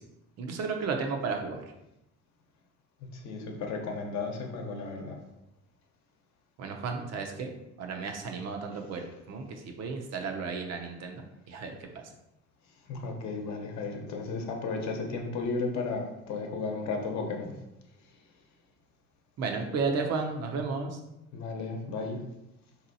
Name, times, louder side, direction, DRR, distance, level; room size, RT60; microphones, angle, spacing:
voice 1, 0.4-1.6 6.6-7.5 7.8-12.0 19.4-21.0, right 4 dB, 55° right, 3 dB, 0.7 m, -33 dB
voice 2, 3.1-5.2 12.9-17.5 21.3-22.2, left 4 dB, 60° left, 2 dB, 0.9 m, -34 dB
3.5 x 2.8 x 2.7 m, 0.89 s
supercardioid pair, 90°, 32 cm